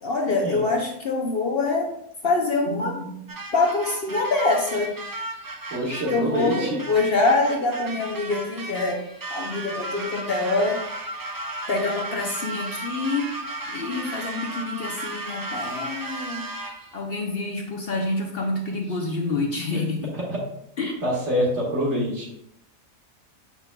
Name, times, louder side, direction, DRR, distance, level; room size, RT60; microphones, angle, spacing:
voice 1, 0.0-1.9 2.2-3.3 3.5-4.9 5.9-9.0 9.3-10.8 11.7-13.3 13.7-16.5 16.9-20.1 20.8-21.0, left 3 dB, 50° left, 0 dB, 0.9 m, -25 dB
sound 1, 3.3-17.0, right 2 dB, 35° right, 0.3 m, -35 dB
voice 2, 5.7-6.8 19.7-19.8 20.1-20.4 21.0-22.3, equal, 55° right, -4 dB, 2.1 m, -26 dB
7.2 x 5.9 x 2.3 m, 0.75 s
omnidirectional pair, 1.4 m